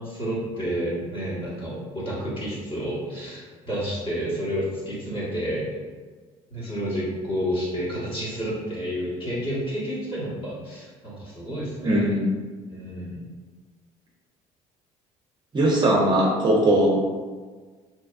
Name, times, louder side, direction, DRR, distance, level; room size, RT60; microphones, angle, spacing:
voice 1, 0.0-5.7 6.5-12.1 12.7-13.2, equal, 35° left, -8 dB, 1.1 m, -30 dB
voice 2, 11.8-12.2 15.5-16.9, right 1 dB, 30° right, -4 dB, 0.5 m, -20 dB
2.7 x 2.3 x 2.3 m, 1.4 s
hypercardioid pair, 60°, 16 cm